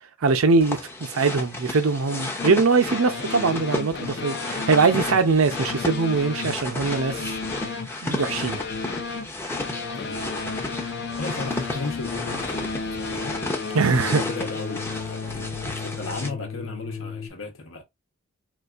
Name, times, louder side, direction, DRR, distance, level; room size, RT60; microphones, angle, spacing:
voice 1, 0.2-7.2 8.0-8.6 13.7-14.2, right 4 dB, 85° right, 0.6 m, -22 dB
sound 1, 0.6-16.3, left 2 dB, 10° left, 0.7 m, -33 dB
sound 2, 2.4-17.3, left 4 dB, 55° left, 0.7 m, -33 dB
voice 2, 9.9-10.3 11.2-13.4 14.1-17.8, left 3 dB, 70° left, 1.0 m, -35 dB
4.0 x 2.5 x 2.4 m
head